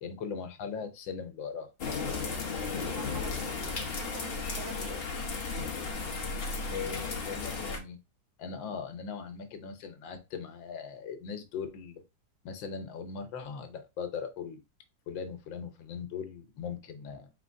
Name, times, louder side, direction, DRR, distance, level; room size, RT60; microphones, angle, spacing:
voice 1, 0.0-1.7 6.7-8.0 8.4-12.0 12.4-14.6 15.1-17.3, left 6 dB, 85° left, 1.6 m, -39 dB
sound 1, 1.8-7.8, left 4 dB, 45° left, 0.8 m, -34 dB
voice 2, 2.7-5.1, right 7 dB, 90° right, 1.4 m, -47 dB
4.4 x 3.9 x 2.5 m
omnidirectional pair, 2.0 m